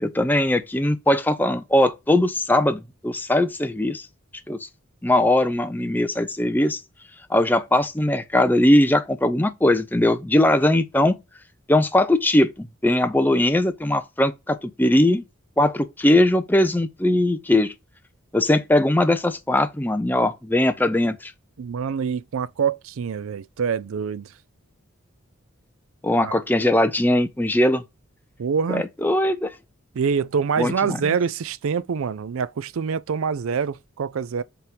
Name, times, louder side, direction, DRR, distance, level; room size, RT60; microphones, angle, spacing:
voice 1, 0.0-4.1 4.5-4.7 5.0-6.8 7.3-11.2 11.7-15.2 15.6-17.7 18.3-21.3 26.0-27.8 28.7-29.5 30.6-31.0, left 1 dB, 10° left, 0.5 m, -20 dB
voice 2, 21.6-24.3 26.2-26.4 28.4-28.8 29.9-34.4, right 6 dB, 75° right, 0.4 m, -25 dB
5.6 x 3.6 x 5.9 m
head